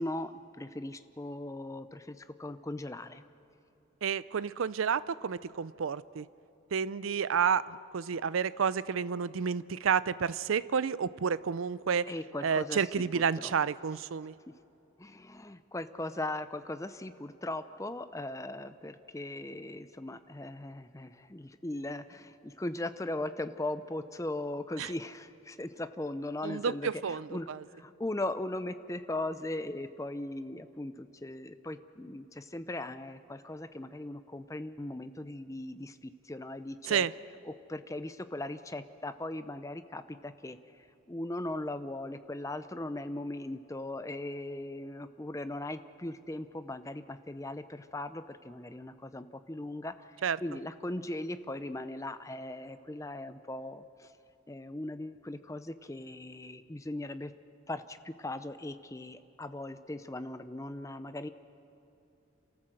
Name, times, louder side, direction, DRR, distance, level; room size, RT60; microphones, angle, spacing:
voice 1, 0.0-3.2 12.1-12.8 13.1-13.5 15.0-27.5 27.7-37.1 37.4-40.6 41.1-50.1 50.4-54.1 54.5-57.3 57.7-61.3, left 1 dB, 15° left, 11 dB, 0.6 m, -39 dB
voice 2, 4.0-6.3 6.7-12.1 12.4-14.3 24.8-24.9 26.4-27.6 36.9-37.1 50.2-50.4, right 6 dB, 80° right, 18 dB, 0.5 m, -30 dB
28.0 x 13.5 x 7.7 m, 2.9 s
head